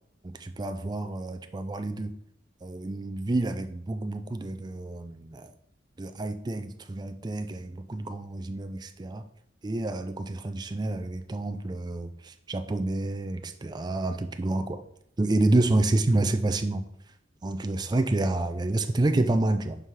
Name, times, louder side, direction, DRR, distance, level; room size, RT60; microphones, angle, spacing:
voice 1, 0.2-2.1 2.6-5.5 6.0-9.2 9.6-14.8 15.2-16.8 17.4-19.8, right 2 dB, 20° right, 8 dB, 0.4 m, -28 dB
5.6 x 4.8 x 5.8 m, 0.71 s
head